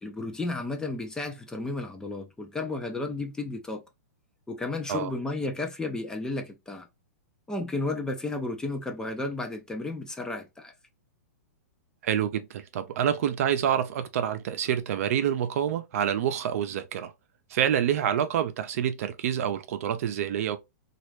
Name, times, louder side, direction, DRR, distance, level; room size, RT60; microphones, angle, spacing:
voice 1, 0.0-3.8 4.5-6.9 7.5-10.7, left 2 dB, 10° left, 0.5 m, -33 dB
voice 2, 12.0-17.1 17.5-20.6, right 9 dB, 65° right, 0.6 m, -27 dB
3.0 x 2.5 x 3.2 m
hypercardioid pair, 130°, 9 cm